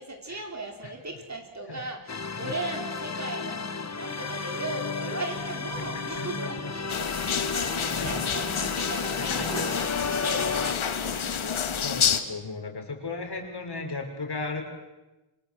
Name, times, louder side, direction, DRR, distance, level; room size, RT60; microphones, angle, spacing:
voice 1, 0.0-11.9, right 2 dB, 35° right, 3 dB, 4.9 m, -38 dB
sound 1, 2.1-10.7, left 5 dB, 35° left, 1.3 m, -33 dB
sound 2, 5.3-10.7, right 4 dB, 65° right, 4.2 m, -47 dB
voice 2, 5.9-6.7 8.0-8.1 9.3-9.6 11.1-11.5 11.8-14.6, left 3 dB, 50° left, 4 dB, 5.9 m, -36 dB
sound 3, 6.9-12.2, left 7 dB, 75° left, 2.0 m, -29 dB
29.0 x 24.5 x 7.9 m, 1.1 s
wide cardioid pair, 105°, 48 cm